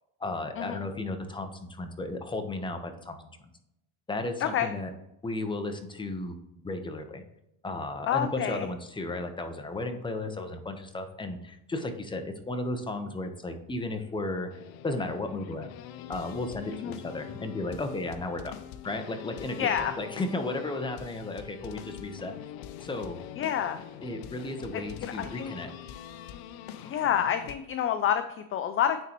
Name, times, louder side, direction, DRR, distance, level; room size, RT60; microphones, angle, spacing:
voice 1, 0.2-3.3 4.1-4.9 5.2-6.4 6.6-7.2 7.6-14.5 14.8-15.7 16.1-18.6 18.8-19.6 20.0-22.4 22.8-23.2 24.0-25.7, left 2 dB, 15° left, 6 dB, 0.8 m, -34 dB
voice 2, 8.1-8.7 16.7-17.0 19.6-19.9 23.4-23.8 24.7-25.5 26.8-29.0, left 9 dB, 35° left, 10 dB, 0.4 m, -28 dB
sound 1, 14.5-27.5, left 10 dB, 75° left, 0.6 m, -44 dB
9.0 x 4.0 x 3.0 m, 0.84 s
cardioid pair, 110°, 36 cm